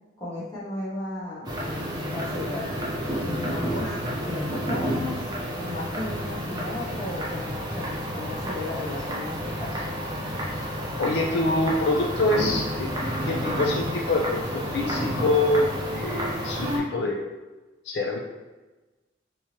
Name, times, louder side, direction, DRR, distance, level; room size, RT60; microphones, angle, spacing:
voice 1, 0.2-1.5 1.9-2.7 3.2-4.0 4.3-5.2 5.5-9.8, left 2 dB, 20° left, -8 dB, 1.1 m, -35 dB
sound 1, 1.4-16.8, equal, 20° right, 0.6 m, -30 dB
voice 2, 11.0-12.9 13.3-17.3 17.9-18.2, left 2 dB, 65° left, 0 dB, 0.3 m, -25 dB
3.4 x 2.9 x 2.9 m, 1.2 s
head